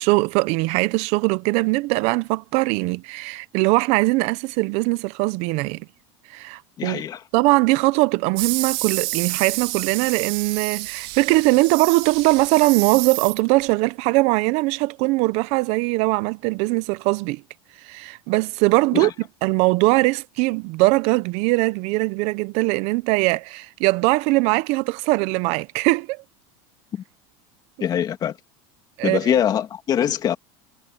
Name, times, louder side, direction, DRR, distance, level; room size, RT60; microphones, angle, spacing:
voice 1, 0.0-5.9 6.3-7.0 7.3-17.4 17.8-19.1 19.4-26.2 29.0-29.2, right 23 dB, 50° right, 0.6 m, -21 dB
voice 2, 6.8-7.2 18.9-19.1 26.9-27.0 27.8-28.4 29.0-30.4, left 9 dB, 30° left, 2.5 m, -23 dB
sound 1, 8.4-13.7, right 21 dB, 70° right, 2.0 m, -29 dB
supercardioid pair, 160°, 14 cm